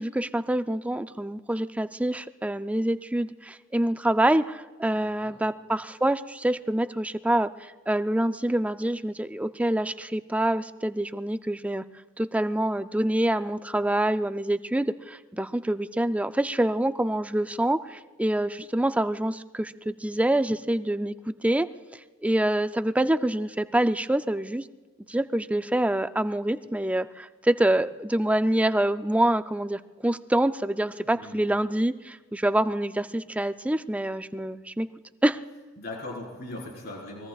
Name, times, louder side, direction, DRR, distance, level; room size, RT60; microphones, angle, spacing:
voice 1, 0.0-11.8 12.2-21.7 22.2-24.6 25.1-34.9 35.2-35.4, right 1 dB, 5° right, 11 dB, 0.4 m, -26 dB
voice 2, 4.9-5.3 31.0-31.4 35.8-37.3, left 2 dB, 50° left, -3 dB, 4.2 m, -39 dB
24.0 x 21.0 x 2.4 m, 1.3 s
head